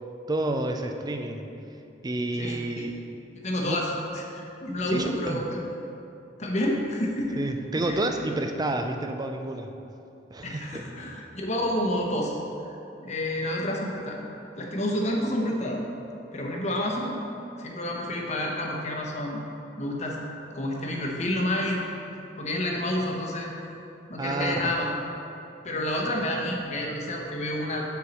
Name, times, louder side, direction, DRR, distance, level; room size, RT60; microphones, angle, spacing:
voice 1, 0.3-1.5 2.0-2.9 3.6-3.8 4.9-5.4 7.4-9.7 10.3-10.8 24.2-24.7, right 2 dB, 20° right, 5 dB, 0.5 m, -29 dB
voice 2, 2.4-2.9 3.4-3.9 4.3-5.6 6.4-7.4 7.9-8.0 10.4-12.4 13.0-14.2 14.6-15.8 16.3-17.2 17.6-19.4 19.8-20.2 20.5-21.8 22.4-23.5 24.1-24.9 25.6-27.8, left 1 dB, 35° left, -1 dB, 1.0 m, -29 dB
7.0 x 4.6 x 6.5 m, 2.8 s
head